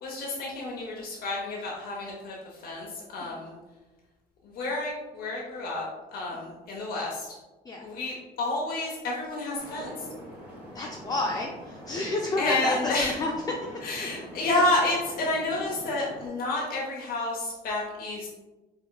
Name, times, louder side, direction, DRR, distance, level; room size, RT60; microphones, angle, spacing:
voice 1, 0.0-3.6 4.4-5.8 6.1-7.3 7.8-10.1 12.4-13.2 13.8-18.3, left 2 dB, 60° left, -4 dB, 0.7 m, -30 dB
sound 1, 9.6-16.3, right 1 dB, 5° right, 1.2 m, -43 dB
voice 2, 10.7-13.3 14.6-14.7, left 2 dB, 25° left, 0 dB, 0.4 m, -30 dB
4.4 x 2.9 x 2.2 m, 1.2 s
cardioid pair, 110°, 17 cm